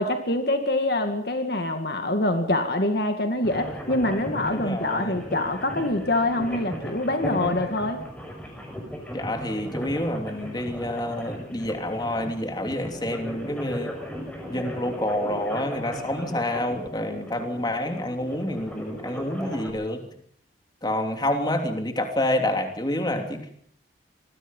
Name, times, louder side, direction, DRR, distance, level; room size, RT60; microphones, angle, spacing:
voice 1, 0.0-8.0, left 1 dB, 55° left, 6 dB, 2.2 m, -25 dB
sound 1, 3.4-19.7, equal, 5° left, 6.3 m, -37 dB
voice 2, 4.5-5.2 9.1-13.9 14.5-20.1 20.8-23.5, left 1 dB, 20° left, 4 dB, 3.1 m, -28 dB
26.5 x 21.5 x 5.6 m, 0.63 s
head